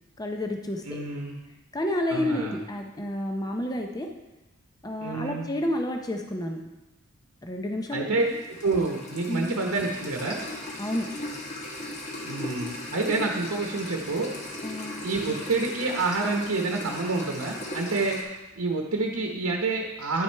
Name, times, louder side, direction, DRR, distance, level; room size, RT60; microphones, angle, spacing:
voice 1, 0.2-1.0 1.7-4.1 4.8-6.6 7.4-8.4 9.3-9.6 10.8-11.1 14.6-15.0, left 1 dB, 15° left, 3 dB, 0.6 m, -30 dB
voice 2, 0.8-1.4 2.1-2.6 5.0-5.5 7.9-8.3 8.6-10.4 12.2-14.3 15.0-18.2 18.6-20.2, right 3 dB, 80° right, 1 dB, 0.9 m, -28 dB
sound 1, 8.2-18.2, left 1 dB, 30° left, 1.1 m, -38 dB
9.6 x 6.1 x 4.5 m, 1.1 s
head